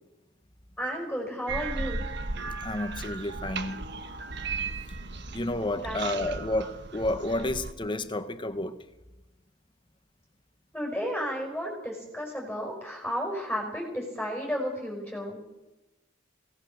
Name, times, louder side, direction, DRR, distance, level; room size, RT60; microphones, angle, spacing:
voice 1, 0.8-2.0 5.7-6.0 6.3-6.4 10.7-15.4, equal, ahead, 5.4 m, -33 dB
sound 1, 1.5-7.7, right 4 dB, 55° right, 1.4 m, -36 dB
voice 2, 2.6-3.8 5.3-8.8, left 1 dB, 25° left, 1.3 m, -30 dB
23.5 x 18.0 x 6.7 m
head